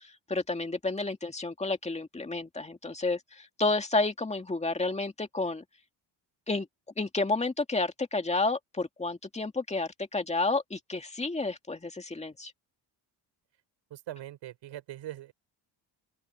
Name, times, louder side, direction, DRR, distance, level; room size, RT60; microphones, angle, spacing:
voice 1, 0.0-5.6 6.5-6.7 7.0-12.5, left 3 dB, 15° left, 2.1 m, -31 dB
voice 2, 13.9-15.3, right 13 dB, 80° right, 4.9 m, -41 dB
open air
cardioid pair, 130°, 44 cm